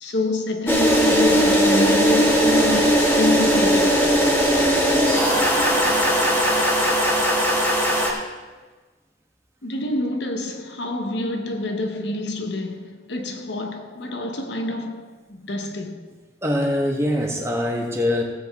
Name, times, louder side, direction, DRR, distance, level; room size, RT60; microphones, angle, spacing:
voice 1, 0.0-4.8 9.6-16.1, left 1 dB, 75° left, 1.1 m, -28 dB
sound 1, 0.7-8.1, equal, 10° left, 1.8 m, -18 dB
voice 2, 16.4-18.2, left 1 dB, 15° right, 1.2 m, -23 dB
16.0 x 7.8 x 3.6 m
head